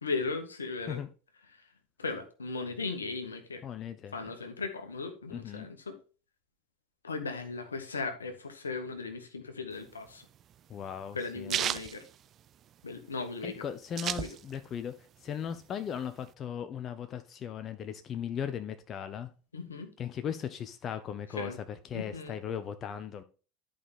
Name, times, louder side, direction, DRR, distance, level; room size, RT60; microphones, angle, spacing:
voice 1, 0.0-1.0 1.6-1.7 2.0-3.6 4.1-6.0 7.0-10.2 11.1-12.0 12.8-13.6 14.0-14.3 19.5-19.9 21.3-21.6 21.9-22.3, left 4 dB, 80° left, 1.3 m, -37 dB
voice 2, 3.6-4.2 5.3-5.7 10.7-11.6 13.4-19.3 20.0-23.2, left 8 dB, 35° left, 0.6 m, -38 dB
sound 1, 9.8-12.9 13.3-13.4 13.5-14.8 15.2-16.3, right 10 dB, 40° right, 0.4 m, -35 dB
11.0 x 5.1 x 3.5 m
figure-of-eight pair, 75°, 0 cm